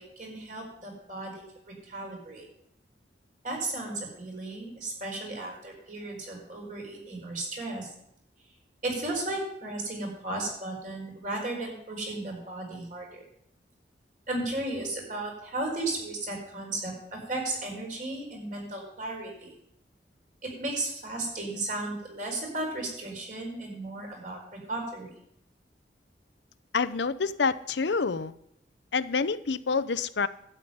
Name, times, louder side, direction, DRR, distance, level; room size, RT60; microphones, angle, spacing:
voice 1, 0.0-1.4 1.9-2.4 3.4-7.9 8.8-13.2 14.3-19.5 20.4-24.4 24.7-25.1, right 2 dB, 45° right, 0 dB, 4.8 m, -35 dB
voice 2, 26.7-28.3 28.9-30.3, left 4 dB, 80° left, 14 dB, 0.7 m, -27 dB
12.0 x 5.7 x 9.2 m, 0.74 s
head